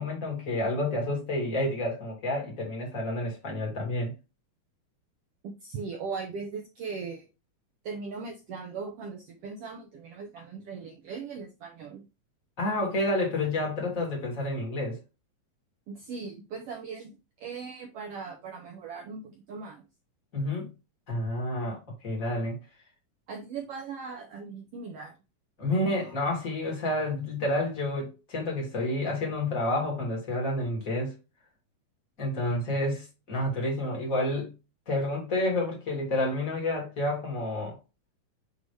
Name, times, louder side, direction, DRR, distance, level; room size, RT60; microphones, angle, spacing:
voice 1, 0.0-4.1 12.6-15.0 20.3-20.7 21.1-22.6 25.6-31.1 32.2-34.5 34.9-37.8, left 1 dB, 25° left, 2.8 m, -29 dB
voice 2, 5.4-7.3 7.8-12.0 15.9-19.8 23.3-25.1 25.7-26.1, right 5 dB, 70° right, 1.5 m, -39 dB
7.9 x 3.9 x 3.2 m
omnidirectional pair, 3.7 m